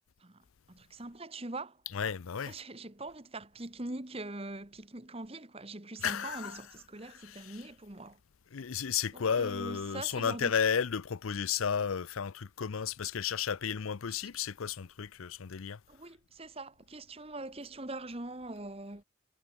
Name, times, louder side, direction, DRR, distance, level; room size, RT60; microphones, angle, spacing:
voice 1, 0.2-1.8 2.5-8.2 9.1-10.5 14.1-14.3 15.9-19.0, right 2 dB, 25° right, 1.5 m, -43 dB
voice 2, 1.9-2.5 6.0-6.6 7.0-7.6 8.5-15.8, left 7 dB, 75° left, 0.6 m, -33 dB
head